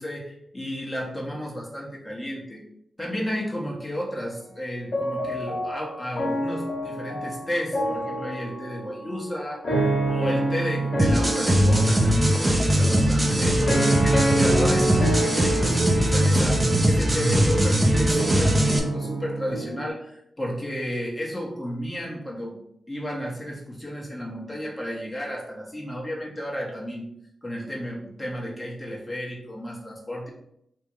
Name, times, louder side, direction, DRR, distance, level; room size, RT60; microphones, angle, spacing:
voice 1, 0.0-2.6 3.0-22.6 22.9-27.1 27.4-30.3, equal, 20° left, -3 dB, 1.7 m, -33 dB
sound 1, 4.9-19.9, right 1 dB, 60° left, 1.6 m, -28 dB
sound 2, 11.0-18.8, right 1 dB, 25° right, 0.9 m, -20 dB
3.5 x 2.7 x 4.6 m, 0.74 s
cardioid pair, 55°, 0 cm